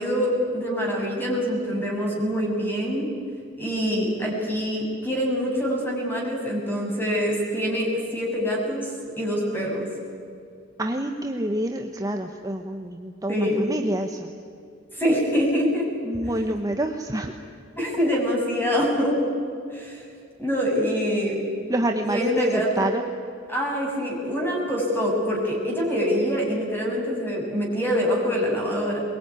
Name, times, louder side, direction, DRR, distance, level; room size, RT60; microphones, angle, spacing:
voice 1, 0.0-3.1 3.6-8.9 9.2-9.9 13.3-13.6 14.9-15.9 17.8-19.2 19.7-20.0 20.4-21.5 22.0-22.9 23.5-29.0, equal, 10° left, -2 dB, 7.2 m, -25 dB
voice 2, 10.8-14.3 16.0-17.3 21.7-23.0, right 1 dB, 20° right, 4 dB, 1.1 m, -27 dB
22.5 x 22.0 x 9.9 m, 2.4 s
head